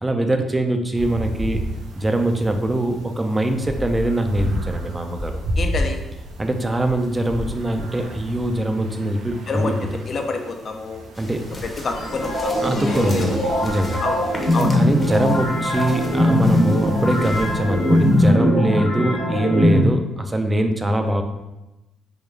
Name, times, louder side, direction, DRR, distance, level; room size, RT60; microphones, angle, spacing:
voice 1, 0.0-1.6 2.0-5.3 6.4-9.7 11.2-11.5 12.6-14.0 14.7-21.2, right 1 dB, 20° right, 5 dB, 0.4 m, -22 dB
sound 1, 0.9-18.3, equal, 80° right, 0.6 m, -33 dB
voice 2, 5.6-6.0 9.5-11.0 11.8-13.4 14.0-14.2 14.5-14.8, left 3 dB, 50° left, 4 dB, 0.5 m, -27 dB
sound 2, 11.1-17.6, left 1 dB, 20° left, 0.8 m, -37 dB
sound 3, 11.9-19.8, left 1 dB, 85° left, 1.2 m, -20 dB
3.7 x 2.2 x 3.2 m, 0.98 s
cardioid pair, 90°, 0 cm